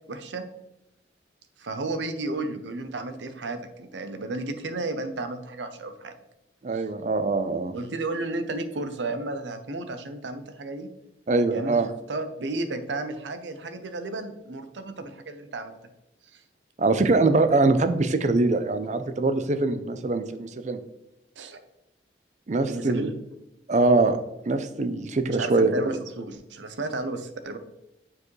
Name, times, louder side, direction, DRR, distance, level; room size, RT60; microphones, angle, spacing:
voice 1, 0.1-0.4 1.6-6.1 7.7-10.9 11.5-15.8 16.3-16.4 21.4-21.6 22.7-23.2 25.3-27.6, right 2 dB, 80° right, 9 dB, 0.7 m, -33 dB
voice 2, 6.6-7.7 11.3-11.9 16.8-20.8 22.5-23.1 23.7-24.2 24.5-26.0, right 3 dB, 40° right, 10 dB, 0.5 m, -23 dB
8.4 x 4.7 x 3.2 m, 0.91 s
head